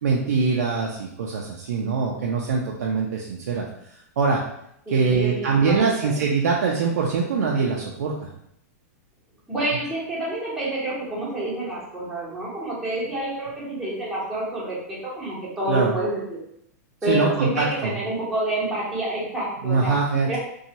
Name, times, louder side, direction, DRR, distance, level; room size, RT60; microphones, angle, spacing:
voice 1, 0.0-3.7 4.2-4.4 4.9-8.1 15.7-15.9 17.1-18.0 19.6-20.4, right 5 dB, 85° right, -2 dB, 0.5 m, -23 dB
voice 2, 4.9-6.1 9.5-16.4 17.0-19.9 20.3-20.4, right 1 dB, 5° right, -9 dB, 1.2 m, -28 dB
2.7 x 2.3 x 2.9 m, 0.73 s
supercardioid pair, 150°, 9 cm